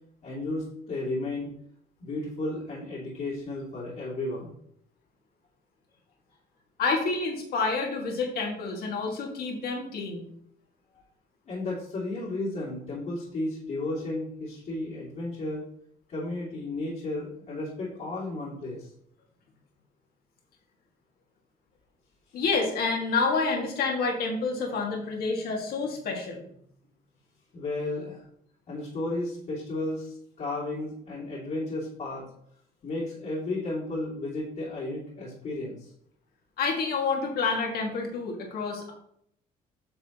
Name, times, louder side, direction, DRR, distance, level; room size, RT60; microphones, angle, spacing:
voice 1, 0.2-1.5 2.0-4.5 11.5-15.6 16.1-18.9 22.3-22.4 27.5-28.2 28.7-32.2 32.8-35.9, left 2 dB, 50° left, -6 dB, 2.5 m, -33 dB
voice 2, 6.8-10.3 22.3-26.4 36.6-38.9, left 4 dB, 65° left, 0 dB, 2.1 m, -28 dB
8.9 x 6.2 x 3.0 m, 0.68 s
cardioid pair, 110°, 17 cm